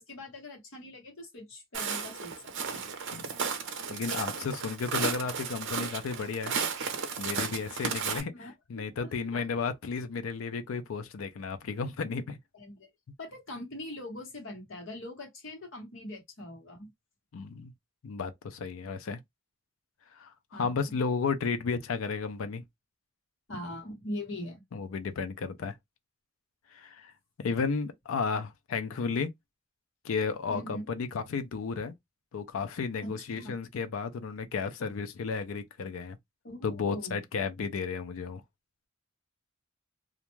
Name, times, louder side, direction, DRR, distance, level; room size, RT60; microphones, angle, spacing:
voice 1, 0.0-2.3 2.7-2.9 8.1-9.4 12.5-12.9 13.2-16.9 20.5-21.0 23.5-24.6 30.5-30.8 33.0-33.6 36.4-37.2, left 1 dB, 65° left, 1.1 m, -42 dB
Walk footsteps, 1.7-8.2, right 6 dB, 60° right, 0.6 m, -34 dB
voice 2, 3.9-6.5 7.2-8.3 8.7-12.4 17.3-17.7 18.0-19.2 20.2-22.6 24.7-25.7 26.7-27.1 27.4-29.3 30.0-31.9 32.3-36.2 36.6-38.4, left 5 dB, 85° left, 0.4 m, -33 dB
2.4 x 2.1 x 3.0 m
head